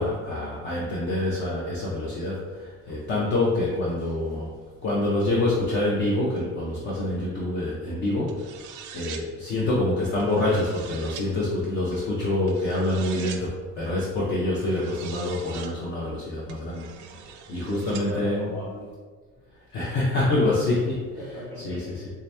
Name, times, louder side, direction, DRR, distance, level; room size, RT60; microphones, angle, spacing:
voice 1, 0.0-4.5 4.8-8.6 8.9-18.5 19.7-21.2 21.6-21.8, left 2 dB, 35° left, -5 dB, 0.6 m, -26 dB
voice 2, 4.0-4.4 17.2-17.3 17.6-18.9 21.2-22.1, equal, 10° left, -9 dB, 1.3 m, -39 dB
sound 1, 8.3-9.2 10.2-11.3 12.5-13.4 14.6-15.7 16.5-18.1, right 8 dB, 75° right, 0.5 m, -42 dB
3.3 x 2.8 x 3.2 m, 1.5 s
cardioid pair, 175°, 30 cm